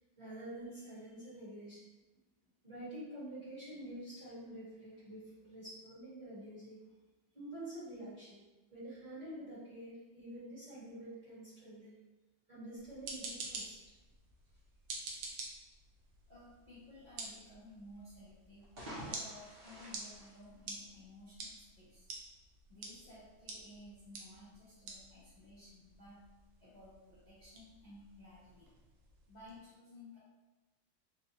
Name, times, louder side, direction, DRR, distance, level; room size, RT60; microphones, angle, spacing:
voice 1, 0.2-1.8 2.6-6.8 7.3-8.4 8.7-11.9 12.5-13.8, right 1 dB, 25° right, -11 dB, 1.5 m, -48 dB
sound 1, 12.8-29.6, right 3 dB, 70° right, 1.1 m, -49 dB
voice 2, 16.3-18.7 19.0-22.1 22.7-26.2 26.6-28.7 29.3-30.2, left 1 dB, 40° left, -11 dB, 0.6 m, -56 dB
sound 2, 18.5-21.2, equal, 45° right, 0.7 m, -49 dB
4.2 x 2.3 x 3.0 m, 1.2 s
omnidirectional pair, 2.1 m